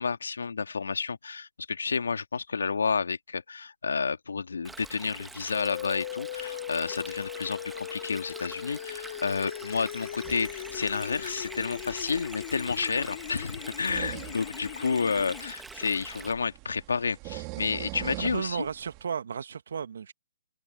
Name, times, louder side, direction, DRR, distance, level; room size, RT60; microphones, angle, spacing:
voice 1, 0.0-18.7, left 5 dB, 80° left, 2.1 m, -30 dB
Stream, 4.6-16.3, right 3 dB, 5° right, 1.3 m, -45 dB
sound 1, 5.5-15.5, left 12 dB, 45° left, 1.1 m, -39 dB
sound 2, 10.2-19.0, right 26 dB, 25° right, 2.4 m, -44 dB
voice 2, 18.2-20.1, right 7 dB, 65° right, 1.3 m, -34 dB
hypercardioid pair, 145°, 0 cm